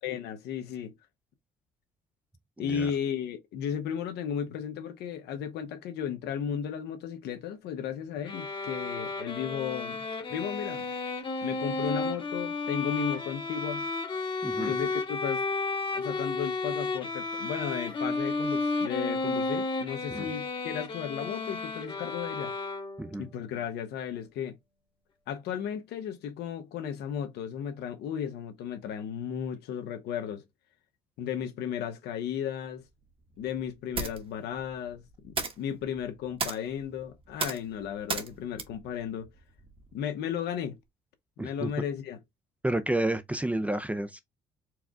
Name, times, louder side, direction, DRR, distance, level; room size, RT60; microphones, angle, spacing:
voice 1, 0.0-0.9 2.6-10.0 10.3-10.8 11.4-13.9 14.6-15.4 15.9-22.5 23.2-24.6 25.3-30.4 31.2-32.8 33.4-39.3 39.9-40.8 41.4-42.2, left 8 dB, 80° left, 1.1 m, -34 dB
voice 2, 2.6-2.9 14.4-14.7 20.1-20.3 23.0-23.3 41.4-41.7 42.6-44.2, right 1 dB, 10° right, 0.5 m, -30 dB
sound 1, 8.2-23.2, left 3 dB, 30° left, 1.1 m, -32 dB
sound 2, 32.8-40.0, right 4 dB, 30° right, 1.1 m, -38 dB
4.6 x 2.3 x 3.6 m
cardioid pair, 110°, 17 cm